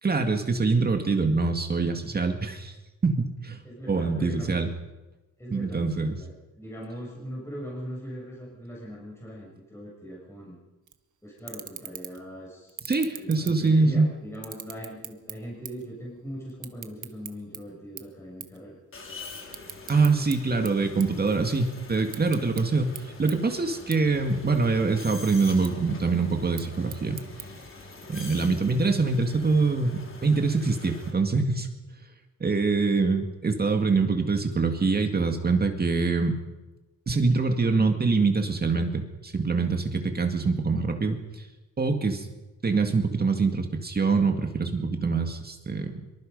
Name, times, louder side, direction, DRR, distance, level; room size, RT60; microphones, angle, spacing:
voice 1, 0.0-2.7 3.0-3.6 3.9-4.7 5.5-6.2 12.9-14.1 19.9-27.2 28.1-31.7 32.4-36.3 37.1-41.5 41.8-42.3 42.6-46.0, right 4 dB, 25° right, 5 dB, 2.1 m, -24 dB
voice 2, 3.6-4.6 5.4-10.6 11.2-12.8 13.2-18.8 28.3-28.5, equal, 5° left, -5 dB, 6.6 m, -40 dB
sound 1, 10.9-11.0 11.4-12.3 12.7-14.0 14.3-15.9 16.2-17.6 18.0-18.1 18.4-18.6 19.0-20.4 20.7-21.6 22.0-22.6 23.0-23.1 23.3-23.4 23.9-24.0 24.4-24.9 25.4-25.7 26.4-27.5, right 9 dB, 60° right, 1.5 m, -40 dB
sound 2, 18.9-31.1, left 3 dB, 35° left, 3.8 m, -44 dB
25.0 x 23.5 x 5.4 m, 1.1 s
cardioid pair, 140°, 35 cm